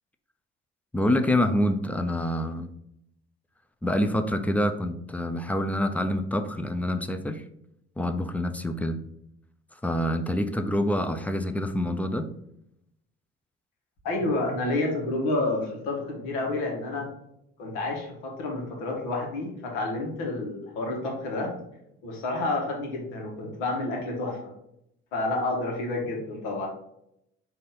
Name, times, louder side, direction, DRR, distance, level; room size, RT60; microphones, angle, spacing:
voice 1, 0.9-2.7 3.8-7.4 8.0-9.0 9.8-12.3, left 1 dB, 5° left, 8 dB, 0.4 m, -26 dB
voice 2, 14.0-17.1 17.6-21.5 22.0-24.5 25.1-26.7, left 2 dB, 75° left, 0 dB, 1.2 m, -29 dB
4.0 x 2.7 x 3.8 m, 0.78 s
hypercardioid pair, 60°, 31 cm